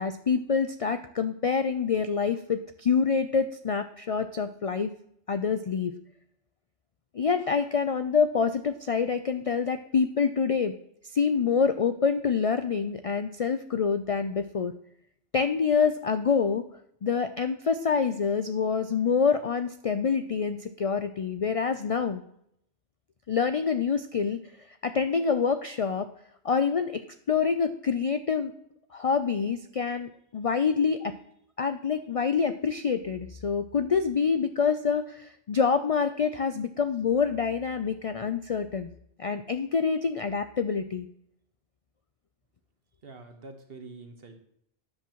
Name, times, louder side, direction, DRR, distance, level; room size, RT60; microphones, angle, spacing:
voice 1, 0.0-4.9 5.3-6.0 7.1-10.7 11.0-14.8 15.3-16.7 17.0-22.2 23.3-24.4 24.8-26.1 26.4-27.0 27.3-28.5 28.9-31.2 31.6-38.9 39.2-41.1, left 6 dB, 55° left, 10 dB, 0.4 m, -26 dB
voice 2, 43.0-44.4, right 3 dB, 55° right, 6 dB, 1.4 m, -45 dB
12.5 x 8.5 x 3.0 m, 0.72 s
omnidirectional pair, 1.2 m